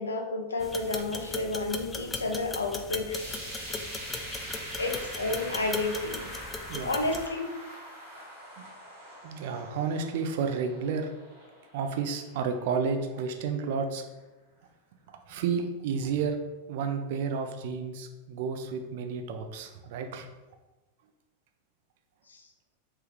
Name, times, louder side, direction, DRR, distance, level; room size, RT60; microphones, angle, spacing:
voice 1, 0.0-3.4 4.8-6.3 6.8-7.5 22.3-22.4, left 2 dB, 85° left, 4 dB, 0.4 m, -31 dB
sound 1, 0.6-7.3, left 3 dB, 20° left, 0.3 m, -38 dB
sound 2, 3.1-13.3 13.7-13.8 14.2-14.3 15.1-15.2, right 1 dB, 80° right, 1.4 m, -43 dB
voice 2, 6.7-7.0 8.6-8.7 9.2-11.1 11.7-14.0 15.1-16.4 16.7-20.3, right 5 dB, 60° right, 6 dB, 0.4 m, -31 dB
3.3 x 2.3 x 3.1 m, 1.1 s
hypercardioid pair, 95°, 0 cm